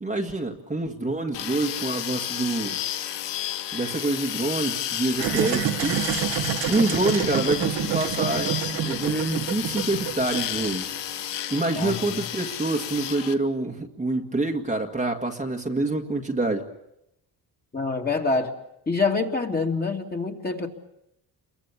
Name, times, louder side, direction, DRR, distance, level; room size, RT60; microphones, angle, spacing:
voice 1, 0.0-2.8 3.7-6.1 6.7-10.9 11.5-16.7, right 2 dB, 15° right, 1 dB, 1.8 m, -26 dB
sound 1, 1.3-13.3, left 11 dB, 85° left, 1.4 m, -32 dB
sound 2, 5.1-11.0, right 10 dB, 85° right, 2.1 m, -28 dB
voice 2, 11.8-12.2 17.7-18.5 18.9-20.7, left 4 dB, 20° left, 1 dB, 2.8 m, -26 dB
28.5 x 23.0 x 7.2 m, 0.82 s
cardioid pair, 115°, 42 cm